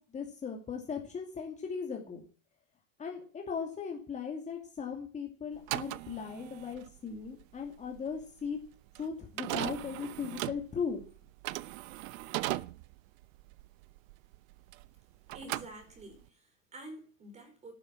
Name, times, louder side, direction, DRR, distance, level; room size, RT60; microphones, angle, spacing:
voice 1, 0.1-2.2 3.0-8.6 9.0-11.1, left 6 dB, 20° left, 2.6 m, -38 dB
sound 1, 5.5-15.0 15.3-16.3, right 18 dB, 75° right, 0.9 m, -39 dB
voice 2, 15.3-17.7, right 1 dB, 15° right, 4.5 m, -49 dB
12.5 x 11.0 x 8.9 m
supercardioid pair, 165°, 39 cm